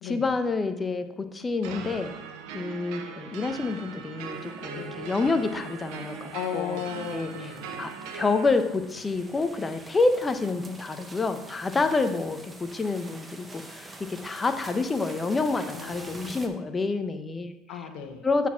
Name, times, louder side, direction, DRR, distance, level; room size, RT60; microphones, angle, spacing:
voice 1, 0.0-1.0 1.3-2.1 2.5-6.8 7.1-7.3 7.8-17.5 18.2-18.5, left 3 dB, 20° left, 9 dB, 0.8 m, -28 dB
sound 1, 1.6-8.5, right 6 dB, 75° right, 1.0 m, -40 dB
sound 2, 4.4-16.5, right 2 dB, 15° right, 1.1 m, -47 dB
voice 2, 6.3-7.8 11.7-12.2 15.7-16.4 17.7-18.3, left 8 dB, 65° left, 4 dB, 1.1 m, -36 dB
8.3 x 4.3 x 5.7 m, 0.96 s
supercardioid pair, 95°, 0 cm